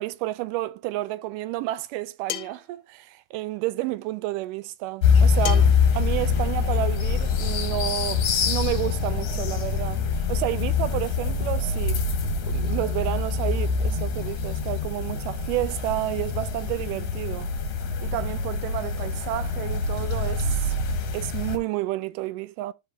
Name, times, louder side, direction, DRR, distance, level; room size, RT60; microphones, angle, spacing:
voice 1, 0.0-12.0 12.4-17.5 18.0-20.8 21.1-22.7, right 16 dB, 85° right, 2.1 m, -30 dB
sound 1, 2.3-2.7 5.5-5.9, left 13 dB, 75° left, 1.8 m, -32 dB
sound 2, 5.0-21.6, left 5 dB, 60° left, 1.9 m, -25 dB
12.5 x 5.1 x 2.2 m
omnidirectional pair, 3.7 m